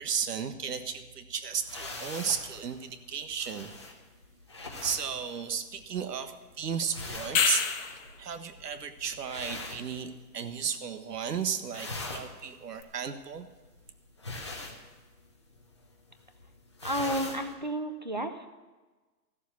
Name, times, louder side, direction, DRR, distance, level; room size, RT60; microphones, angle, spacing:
voice 1, 0.0-3.7 4.8-7.6 8.2-13.5, right 7 dB, 70° right, 9 dB, 1.4 m, -34 dB
sound 1, 1.6-10.6 10.9-11.3 11.6-17.5, left 2 dB, 20° left, 0.6 m, -43 dB
sound 2, 7.2-8.1 12.8-12.9, left 7 dB, 50° left, 1.3 m, -27 dB
voice 2, 16.8-18.5, equal, 30° right, 8 dB, 0.4 m, -32 dB
14.0 x 7.3 x 8.4 m, 1.3 s
hypercardioid pair, 175°, 49 cm